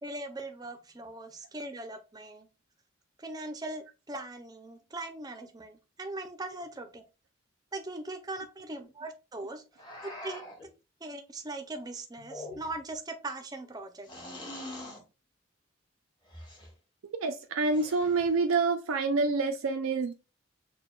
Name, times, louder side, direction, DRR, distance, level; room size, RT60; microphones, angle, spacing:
voice 1, 0.0-2.5 3.2-7.0 7.7-9.6 10.0-10.4 11.0-14.1, right 2 dB, 20° right, 0.5 m, -40 dB
sound 1, 9.8-10.7 12.2-12.9 14.0-15.0 16.3-16.7 17.6-18.3, left 1 dB, 20° left, 0.9 m, -44 dB
voice 2, 17.2-20.1, right 3 dB, 85° right, 0.4 m, -27 dB
6.5 x 2.2 x 2.2 m
head